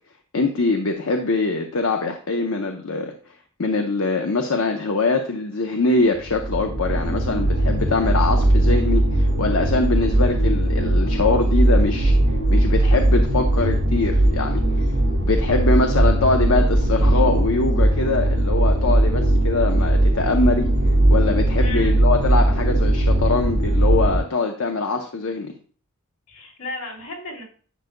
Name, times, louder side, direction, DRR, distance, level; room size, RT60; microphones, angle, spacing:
voice 1, 0.3-3.1 3.6-12.1 12.5-14.9 15.2-20.7 21.1-25.5, left 3 dB, 70° left, 4 dB, 0.8 m, -23 dB
sound 1, 6.2-24.2, right 1 dB, 85° right, 3.0 m, -19 dB
voice 2, 21.6-22.0 26.3-27.4, left 2 dB, 90° left, -3 dB, 3.5 m, -34 dB
10.0 x 8.0 x 2.2 m, 0.43 s
head